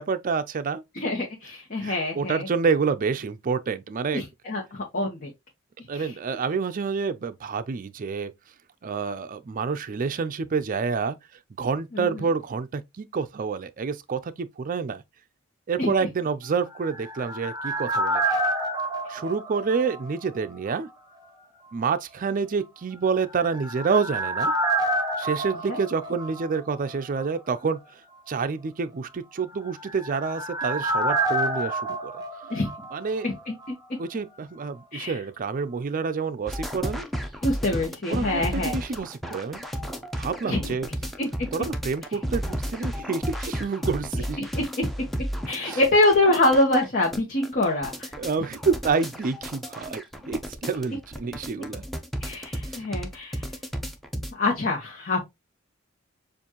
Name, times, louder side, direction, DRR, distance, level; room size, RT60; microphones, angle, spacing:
voice 1, 0.0-0.8 1.8-4.2 5.9-8.3 8.8-11.2 11.6-15.0 15.7-18.2 19.1-20.9 21.7-24.5 25.2-27.8 28.3-32.1 32.9-33.3 34.0-37.1 38.1-39.9 40.2-40.9 41.5-44.4 45.6-45.8 48.2-51.8, right 5 dB, 40° right, 0.4 m, -28 dB
voice 2, 0.9-2.5 4.1-5.3 5.9-6.1 11.9-12.1 15.8-15.9 25.7-25.8 32.5-32.7 33.2-33.8 34.9-35.1 37.4-38.7 40.4-40.7 41.2-41.5 44.4-45.1 45.4-48.1 52.2-53.4 54.3-55.2, left 2 dB, 45° left, 1.1 m, -25 dB
sound 1, 16.6-20.4 20.7-20.8 23.2-26.9 27.2-27.3 29.5-33.4 33.6-33.7, right 1 dB, 20° right, 1.0 m, -28 dB
sound 2, 36.5-54.3, equal, ahead, 0.7 m, -33 dB
7.0 x 2.5 x 2.9 m
head